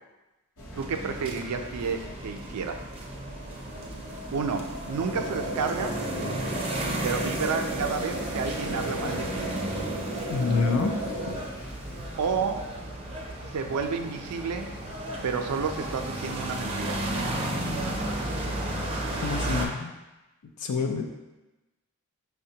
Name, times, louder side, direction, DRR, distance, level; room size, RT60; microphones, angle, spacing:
sound 1, 0.6-19.3, equal, 65° left, 0.8 m, -43 dB
sound 2, 0.8-19.7, right 1 dB, 25° right, 0.4 m, -34 dB
voice 1, 0.8-2.8 4.3-6.0 7.0-9.5 12.2-12.8 13.5-14.7 15.2-17.0, right 5 dB, 85° right, 5 dB, 0.4 m, -30 dB
sound 3, 5.1-11.3, right 1 dB, 30° left, 1.0 m, -34 dB
voice 2, 10.3-11.0 11.3-11.4 19.2-19.9 20.6-21.0, left 4 dB, 85° left, 3 dB, 0.4 m, -27 dB
5.7 x 2.1 x 2.7 m, 1.0 s
head